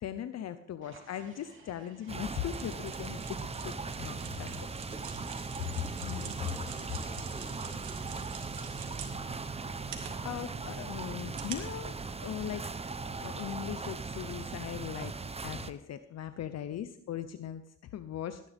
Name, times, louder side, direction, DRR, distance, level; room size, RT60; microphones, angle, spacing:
voice 1, 0.0-3.4 3.6-3.7 4.0-4.5 6.0-6.4 10.2-12.7 13.2-15.1 15.4-18.4, left 10 dB, 60° left, 11 dB, 0.7 m, -39 dB
sound 1, 0.8-4.5 5.5-11.9, right 3 dB, 40° right, 3.0 m, -58 dB
sound 2, 2.1-15.7, right 4 dB, 20° right, 0.8 m, -39 dB
sound 3, 2.4-12.4, right 8 dB, 80° right, 2.1 m, -47 dB
voice 2, 5.7-8.3, left 1 dB, 10° left, 0 dB, 4.0 m, -52 dB
17.5 x 10.5 x 3.5 m, 0.69 s
cardioid pair, 90°, 30 cm